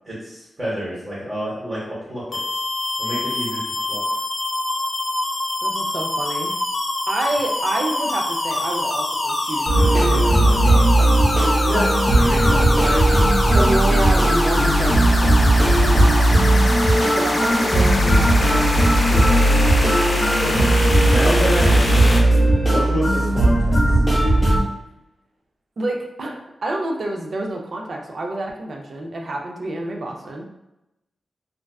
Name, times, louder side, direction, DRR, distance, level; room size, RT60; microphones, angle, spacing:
voice 1, 0.1-2.4 3.0-4.0 11.6-11.9 12.2-13.0 13.5-13.9 17.6-17.7 20.4-20.7 21.1-23.8, equal, 20° right, -10 dB, 0.9 m, -28 dB
sound 1, 2.3-22.2, left 1 dB, 40° left, 0.4 m, -25 dB
voice 2, 5.6-6.5 7.1-11.1 13.5-20.0 25.8-30.4, right 2 dB, 55° right, 1 dB, 0.3 m, -28 dB
sound 2, 9.7-24.6, right 1 dB, 10° left, 0.9 m, -17 dB
2.4 x 2.2 x 2.2 m, 0.91 s
wide cardioid pair, 150°, 0 cm